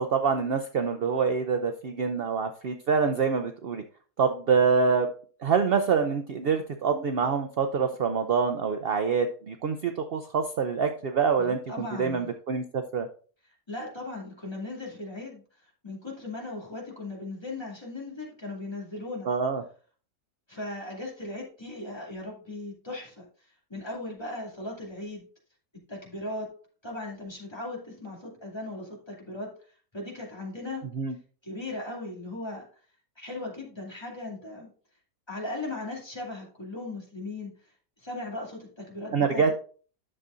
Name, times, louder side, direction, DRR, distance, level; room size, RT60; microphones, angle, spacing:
voice 1, 0.0-3.8 4.2-5.1 5.4-13.1 19.2-19.6 30.9-31.2 39.1-39.5, right 5 dB, 65° right, 7 dB, 0.5 m, -26 dB
voice 2, 11.4-12.3 13.7-15.4 15.8-19.3 20.5-23.3 23.7-25.3 25.9-26.5 26.8-29.5 29.9-30.8 31.4-32.6 33.2-34.7 35.3-37.5 38.0-39.5, left 2 dB, 15° left, -2 dB, 2.4 m, -37 dB
11.0 x 6.7 x 2.5 m, 0.41 s
omnidirectional pair, 1.7 m